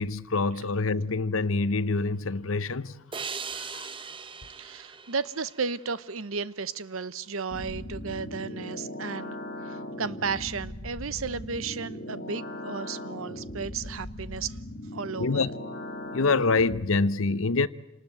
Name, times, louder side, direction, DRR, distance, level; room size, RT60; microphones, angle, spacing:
voice 1, 0.0-3.0 3.4-3.9 15.2-15.5 16.1-17.7, left 3 dB, 80° left, 0.8 m, -26 dB
sound 1, 3.1-6.4, right 5 dB, 25° right, 0.8 m, -40 dB
voice 2, 4.6-14.6 14.9-15.5, right 5 dB, 85° right, 0.9 m, -34 dB
sound 2, 7.5-16.9, left 1 dB, 55° left, 2.6 m, -39 dB
27.5 x 19.5 x 7.8 m
head